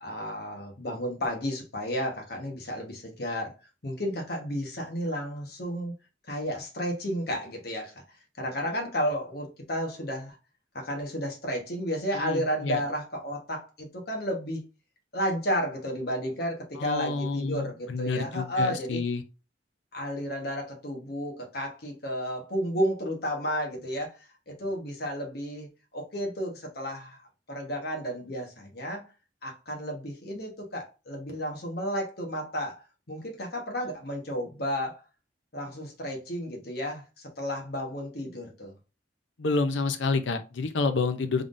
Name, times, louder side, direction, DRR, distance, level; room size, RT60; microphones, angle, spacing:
voice 1, 0.0-3.5 3.8-5.9 6.3-8.0 8.4-10.4 10.7-14.7 15.1-19.0 19.9-24.2 24.5-27.2 27.5-29.1 29.4-35.0 35.5-38.7, equal, 55° left, 1.2 m, -32 dB
voice 2, 12.1-12.8 16.8-19.2 39.4-41.5, left 4 dB, 80° left, 0.6 m, -29 dB
3.7 x 3.6 x 2.5 m
head